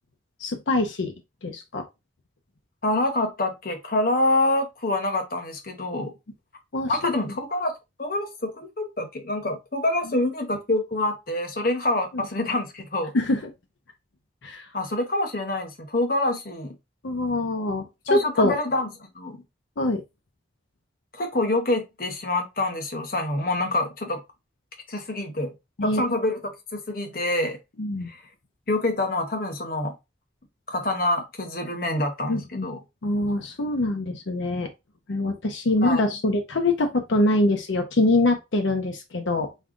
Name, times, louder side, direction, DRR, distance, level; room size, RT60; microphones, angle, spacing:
voice 1, 0.4-1.1 1.4-1.8 6.7-7.3 12.1-12.2 13.1-13.4 14.4-14.7 17.0-17.9 18.1-18.5 19.8-20.0 25.8-26.0 27.8-28.1 32.3-32.7 33.0-34.7 35.1-39.5, left 2 dB, 80° left, 0.7 m, -24 dB
voice 2, 2.8-6.1 6.9-7.7 8.0-13.1 14.7-16.7 18.1-19.4 21.1-24.2 24.9-25.5 25.8-27.6 28.1-28.2 28.7-29.9 30.7-32.8 35.8-36.0, left 2 dB, 50° left, 1.0 m, -26 dB
5.4 x 2.3 x 3.7 m
head